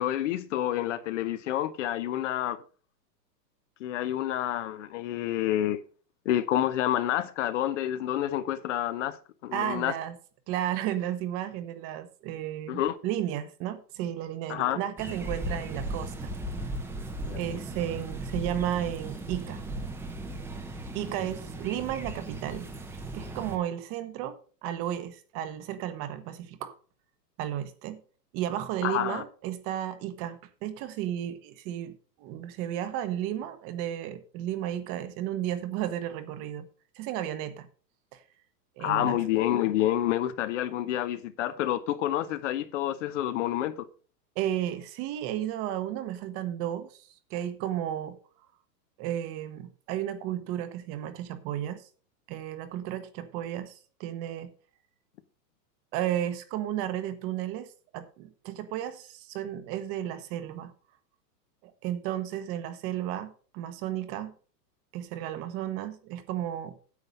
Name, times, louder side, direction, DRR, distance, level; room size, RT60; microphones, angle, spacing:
voice 1, 0.0-2.6 3.8-5.8 6.2-9.2 9.4-9.9 12.7-13.0 14.5-14.8 17.2-17.6 28.8-29.2 38.8-43.9, left 12 dB, 45° left, 0.8 m, -28 dB
voice 2, 9.5-10.2 10.5-16.3 17.3-19.6 20.9-26.7 27.4-28.0 28.3-36.7 36.9-37.7 38.1-38.2 38.8-39.2 44.4-48.2 49.0-51.9 52.3-54.5 55.9-60.7 61.6-64.3 64.9-66.7, right 11 dB, 30° right, 1.1 m, -33 dB
sound 1, 15.0-23.6, right 1 dB, 5° right, 0.7 m, -37 dB
9.5 x 7.6 x 5.4 m
hypercardioid pair, 150°, 50 cm